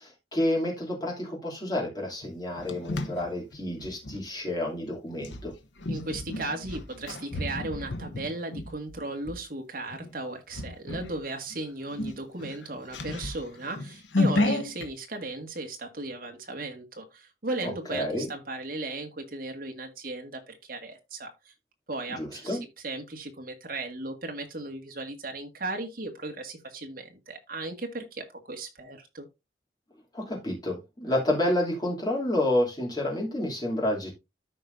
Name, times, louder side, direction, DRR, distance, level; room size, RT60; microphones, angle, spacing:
voice 1, 0.0-5.5 17.6-18.3 22.1-22.6 30.1-34.1, left 1 dB, 20° left, 2.9 m, -29 dB
sound 1, 2.2-4.2 5.2-9.4 9.9-10.1 10.5-11.2 11.5-11.6 11.9-14.9, left 2 dB, 80° left, 1.0 m, -32 dB
voice 2, 5.9-21.5 21.9-22.6 22.8-29.3, right 2 dB, 50° right, 1.8 m, -36 dB
13.5 x 4.8 x 2.7 m
head